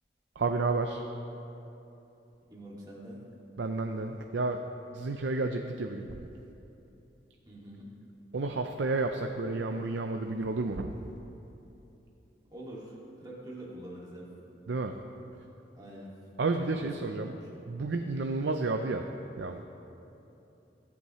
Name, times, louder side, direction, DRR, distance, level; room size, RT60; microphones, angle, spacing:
voice 1, 0.4-1.0 3.6-4.6 4.9-6.2 8.3-11.0 14.7-15.0 16.4-17.3 17.7-19.1 19.4-19.6, right 3 dB, 90° right, 5 dB, 0.5 m, -31 dB
voice 2, 2.5-3.2 7.5-7.9 12.5-14.3 15.7-16.1 16.6-17.4, right 1 dB, 20° right, -6 dB, 2.2 m, -45 dB
22.5 x 8.4 x 3.1 m, 2.9 s
head